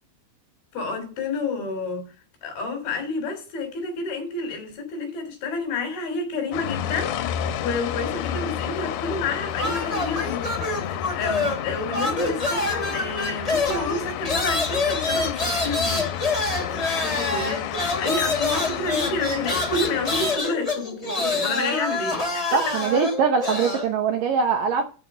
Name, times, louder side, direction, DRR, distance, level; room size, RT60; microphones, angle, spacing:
voice 1, 0.7-2.1 2.4-16.1 16.6-22.6, left 3 dB, 65° left, 5.1 m, -30 dB
sound 1, 6.5-20.4, left 10 dB, 90° left, 3.0 m, -31 dB
sound 2, 9.5-11.7 11.9-23.9, left 2 dB, 10° left, 1.7 m, -26 dB
voice 2, 22.5-24.8, right 6 dB, 70° right, 2.2 m, -22 dB
12.0 x 5.1 x 5.8 m
omnidirectional pair, 4.7 m